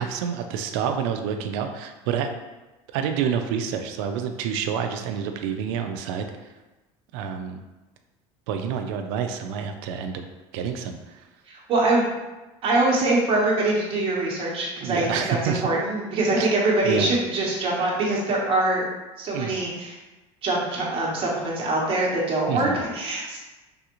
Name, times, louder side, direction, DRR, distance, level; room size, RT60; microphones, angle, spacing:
voice 1, 0.0-2.3 2.9-6.3 7.1-7.7 8.5-10.2 10.5-11.2 14.8-15.7 16.3-16.5 16.8-17.1 19.3-19.6 22.5-22.8, right 7 dB, 90° right, 6 dB, 0.4 m, -28 dB
voice 2, 11.5-12.1 12.6-18.8 19.2-20.0 20.4-23.4, right 2 dB, 40° right, -4 dB, 1.0 m, -23 dB
3.3 x 2.4 x 2.9 m, 1.1 s
cardioid pair, 130°, 14 cm